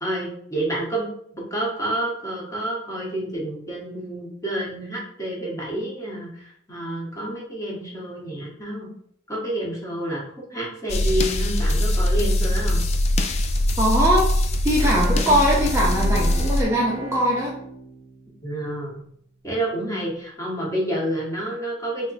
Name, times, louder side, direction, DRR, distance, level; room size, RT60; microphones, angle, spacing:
voice 1, 0.0-8.9 9.3-10.2 10.5-12.8 18.4-19.0 19.4-22.1, right 1 dB, 20° left, -4 dB, 1.0 m, -29 dB
sound 1, 10.9-16.6, left 1 dB, 35° left, 0.3 m, -21 dB
voice 2, 13.8-14.2 14.6-17.5, equal, 15° right, -4 dB, 0.5 m, -21 dB
Bowed string instrument, 14.7-19.0, right 3 dB, 45° right, 0.8 m, -36 dB
3.4 x 2.1 x 4.0 m, 0.66 s
head